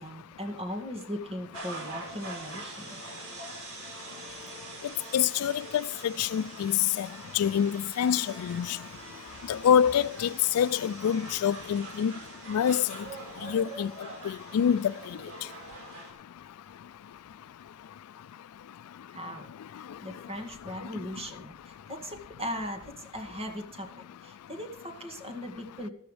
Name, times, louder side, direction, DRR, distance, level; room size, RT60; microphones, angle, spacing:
voice 1, 0.0-3.0 19.1-19.5 20.0-25.9, equal, 25° right, 2.1 m, -38 dB
sound 1, 1.5-16.1, right 2 dB, 70° right, 4.7 m, -44 dB
voice 2, 5.1-7.1 7.3-8.8 9.5-12.1 12.5-13.0 13.4-13.9 14.2-15.2, left 8 dB, 85° left, 0.3 m, -26 dB
14.0 x 13.0 x 3.3 m
head